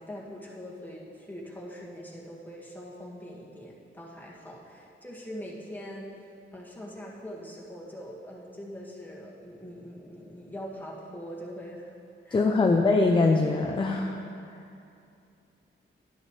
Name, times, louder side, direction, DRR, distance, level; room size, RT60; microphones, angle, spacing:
voice 1, 0.0-6.1 6.5-12.0 12.3-12.8, equal, 10° left, -4 dB, 1.8 m, -42 dB
voice 2, 12.3-14.2, left 3 dB, 25° left, 2 dB, 0.6 m, -22 dB
11.0 x 10.5 x 3.3 m, 2.6 s
wide cardioid pair, 100°, 21 cm